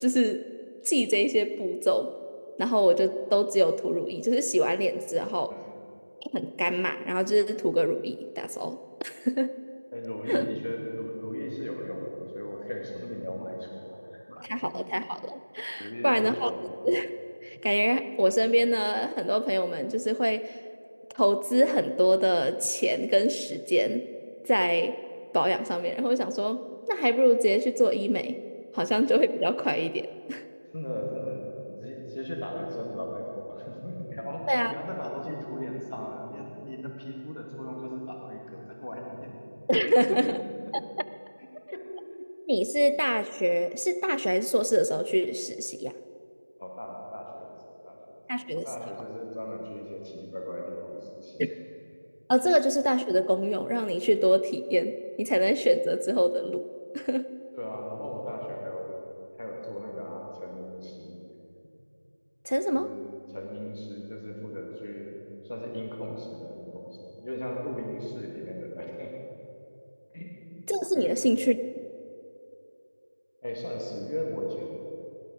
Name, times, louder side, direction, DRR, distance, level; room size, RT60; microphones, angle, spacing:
voice 1, 0.0-0.4 0.9-2.1 2.6-5.5 6.3-9.5 10.3-10.5 14.4-16.5 16.8-17.1 17.4-20.6 21.1-24.1 24.5-25.0 25.3-28.4 28.7-30.4 34.5-34.7 39.7-40.4 42.5-45.9 48.3-48.7 51.4-51.5 52.3-56.7 56.9-57.3 62.4-62.9 70.7-71.6, equal, 85° right, 14 dB, 0.6 m, -25 dB
voice 2, 9.9-14.8 15.8-16.8 28.7-28.8 30.7-39.4 39.9-40.2 40.6-40.7 41.7-41.9 46.6-51.5 57.5-59.0 59.4-61.2 62.7-65.1 65.4-69.2 70.1-70.3 70.9-71.3 73.4-74.7, equal, 25° left, -1 dB, 1.6 m, -37 dB
17.0 x 11.5 x 5.0 m, 2.8 s
figure-of-eight pair, 175°, 0 cm